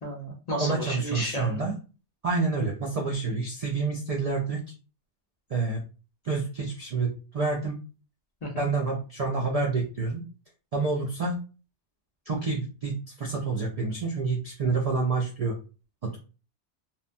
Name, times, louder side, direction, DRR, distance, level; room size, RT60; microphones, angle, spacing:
voice 1, 0.0-1.6 8.4-8.7, equal, 50° left, 0 dB, 0.5 m, -33 dB
voice 2, 0.6-1.7 2.2-4.6 5.5-5.8 6.2-7.8 8.6-10.2 10.7-11.4 12.3-15.5 16.0-16.2, right 4 dB, 60° right, 0 dB, 0.4 m, -28 dB
2.9 x 2.1 x 2.5 m, 0.35 s
omnidirectional pair, 1.2 m